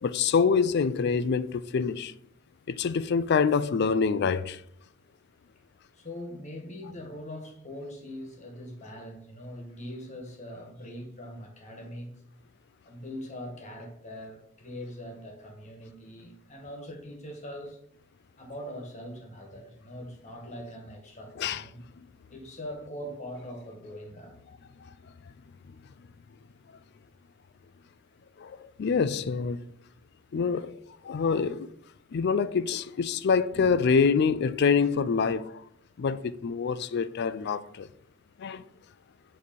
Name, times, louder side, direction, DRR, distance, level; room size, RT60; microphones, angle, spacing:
voice 1, 0.0-2.1 2.7-4.6 21.4-21.6 28.4-29.6 30.3-30.7 31.0-31.7 32.1-35.6 36.0-37.9 38.4-38.6, left 5 dB, 55° left, 0.4 m, -26 dB
voice 2, 5.9-12.2 12.8-17.8 18.4-21.8 22.3-24.3 30.3-30.6 33.5-33.8, equal, 35° left, 1.5 m, -42 dB
8.1 x 3.2 x 5.2 m
head